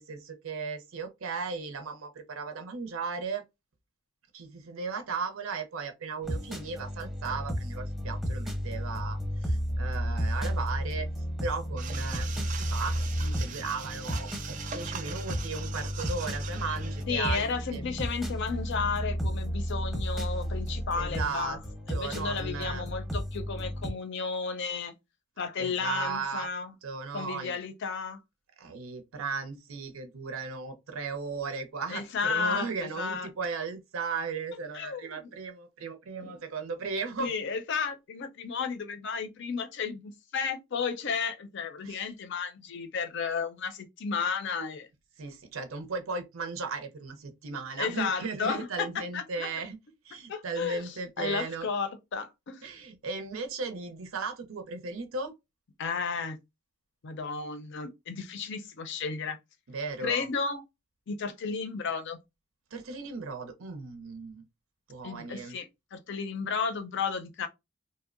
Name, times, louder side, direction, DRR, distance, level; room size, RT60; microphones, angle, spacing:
voice 1, 0.0-3.4 4.3-11.1 11.4-17.8 20.9-21.6 21.9-22.9 25.6-26.5 26.8-27.6 28.6-37.3 41.8-42.1 45.2-49.8 50.0-51.7 52.6-55.3 59.7-60.3 62.7-64.4 64.9-65.6, right 4 dB, 90° right, 0.6 m, -36 dB
sound 1, 6.2-23.9, equal, ahead, 0.7 m, -33 dB
sound 2, 11.8-17.0, right 7 dB, 40° right, 0.3 m, -41 dB
voice 2, 17.1-21.6 21.9-24.9 25.4-26.7 27.1-28.2 31.9-32.7 33.0-33.3 34.7-35.2 36.2-36.3 37.2-44.9 47.8-48.9 49.1-49.5 50.3-52.6 55.8-56.4 57.0-59.4 60.0-60.6 61.1-62.2 65.0-67.5, left 5 dB, 60° left, 0.5 m, -33 dB
2.6 x 2.0 x 2.4 m
head